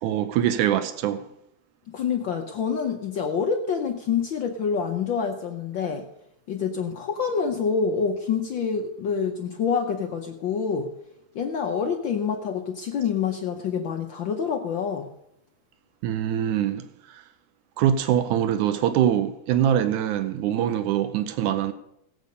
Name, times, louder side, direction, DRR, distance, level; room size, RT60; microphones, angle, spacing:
voice 1, 0.0-1.2 16.0-17.2 17.8-21.7, right 10 dB, 85° right, 2.2 m, -23 dB
voice 2, 1.9-6.1 6.5-10.9 11.3-15.1, left 6 dB, 85° left, 1.0 m, -27 dB
18.0 x 8.3 x 5.3 m
omnidirectional pair, 3.4 m